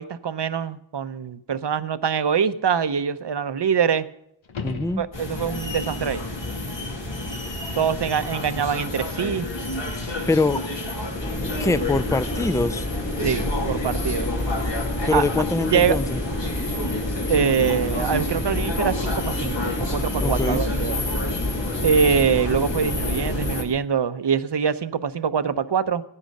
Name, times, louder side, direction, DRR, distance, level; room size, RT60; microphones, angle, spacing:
voice 1, 0.0-4.1 5.0-6.2 7.8-9.5 13.2-14.3 15.1-15.2 15.7-16.0 17.3-21.0 21.8-26.0, right 7 dB, 60° right, 13 dB, 0.8 m, -24 dB
sound 1, 4.4-5.7 10.5-10.6, left 5 dB, 85° left, 1.2 m, -36 dB
voice 2, 4.6-5.0 10.3-10.6 11.4-12.9 15.1-16.2 20.2-20.6, left 3 dB, 5° left, 14 dB, 0.5 m, -23 dB
sound 2, 5.1-23.6, left 2 dB, 70° left, 2.8 m, -30 dB
sound 3, 11.2-23.6, left 1 dB, 25° left, 2.1 m, -29 dB
15.5 x 10.0 x 6.5 m, 0.75 s
wide cardioid pair, 55°, 46 cm